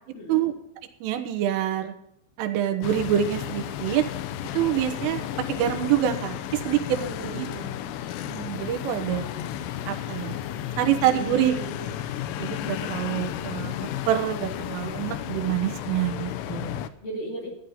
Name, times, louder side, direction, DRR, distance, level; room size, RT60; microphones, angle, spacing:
voice 1, 1.0-1.9 2.4-4.1 4.6-5.2 5.5-7.5 8.2-9.3 9.9-10.4 10.8-11.5 12.4-16.9, right 11 dB, 80° right, 8 dB, 3.7 m, -26 dB
sound 1, 2.8-16.9, left 11 dB, 85° left, 2.5 m, -33 dB
voice 2, 6.9-7.9 11.1-11.9 17.0-17.5, right 1 dB, 45° left, -1 dB, 4.4 m, -36 dB
14.0 x 10.5 x 5.5 m, 0.76 s
omnidirectional pair, 5.8 m